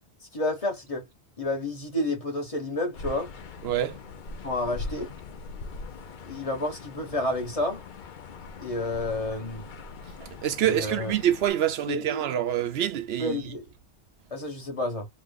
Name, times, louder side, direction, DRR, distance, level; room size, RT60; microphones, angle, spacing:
voice 1, 0.3-1.1 1.4-3.3 4.4-5.1 6.2-7.8 8.6-9.7 10.6-11.1 11.9-12.2 13.2-13.6 14.3-15.1, left 2 dB, 35° left, 1.2 m, -30 dB
sound 1, 2.9-11.5, left 3 dB, 55° left, 0.7 m, -41 dB
voice 2, 3.6-4.0 10.2-13.5, right 11 dB, 75° right, 0.8 m, -26 dB
3.1 x 2.1 x 3.5 m
omnidirectional pair, 1.1 m